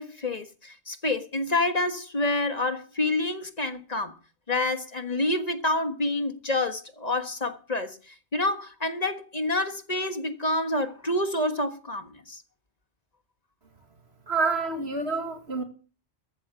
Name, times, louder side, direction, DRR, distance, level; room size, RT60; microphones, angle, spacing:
voice 1, 0.0-4.2 4.5-12.4, left 2 dB, 40° left, 1.5 m, -28 dB
voice 2, 14.3-15.6, right 4 dB, 75° right, 2.3 m, -27 dB
14.0 x 8.9 x 6.9 m
omnidirectional pair, 1.1 m